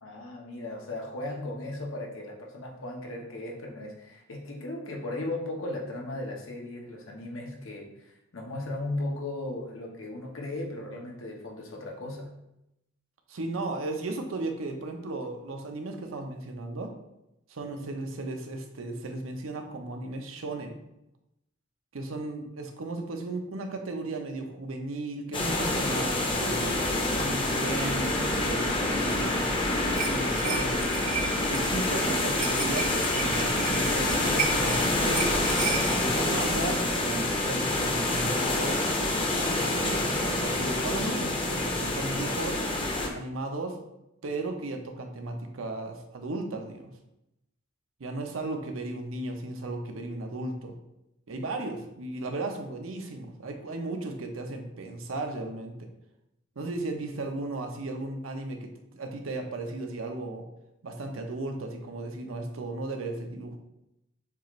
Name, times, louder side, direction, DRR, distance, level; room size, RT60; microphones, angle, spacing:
voice 1, 0.0-12.3, left 2 dB, 80° left, 0 dB, 0.9 m, -36 dB
voice 2, 13.3-16.9 17.5-20.8 21.9-29.5 30.1-30.8 31.5-35.5 36.0-38.8 39.5-42.6 43.1-43.8 44.2-46.9 48.0-50.7 51.3-55.9 56.6-60.5 60.8-63.6, right 2 dB, 85° right, 4 dB, 0.7 m, -35 dB
sound 1, 25.3-43.1, left 2 dB, 25° left, 0.6 m, -27 dB
sound 2, 29.1-36.5, right 5 dB, 40° right, 0.6 m, -35 dB
6.8 x 2.5 x 3.1 m, 0.87 s
head